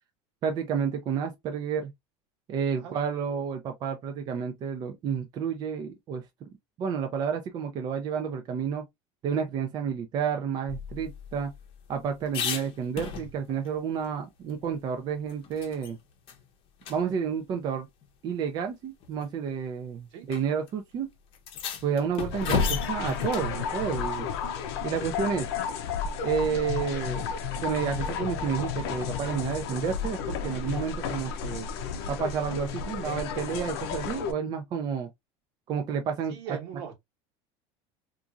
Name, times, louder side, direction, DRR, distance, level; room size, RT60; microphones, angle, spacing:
voice 1, 0.4-1.9 2.5-6.5 6.8-8.8 9.2-11.5 11.9-16.0 16.9-17.9 18.2-21.1 21.8-24.3 24.8-25.5 26.2-27.2 27.6-31.7 32.1-35.1 35.7-36.6, right 7 dB, 30° right, 0.4 m, -30 dB
sound 1, 10.7-13.7 14.0-14.1 14.5-15.9 16.3-16.4 16.8-17.0 18.0-18.1 19.0-19.3 20.3-20.4 20.7-20.8 21.3-23.5 25.8-26.3, left 6 dB, 45° left, 0.7 m, -34 dB
sound 2, 22.3-34.3, left 7 dB, 80° left, 0.6 m, -32 dB
voice 2, 36.3-36.9, right 9 dB, 75° right, 1.1 m, -39 dB
2.8 x 2.5 x 2.4 m
supercardioid pair, 150°, 13 cm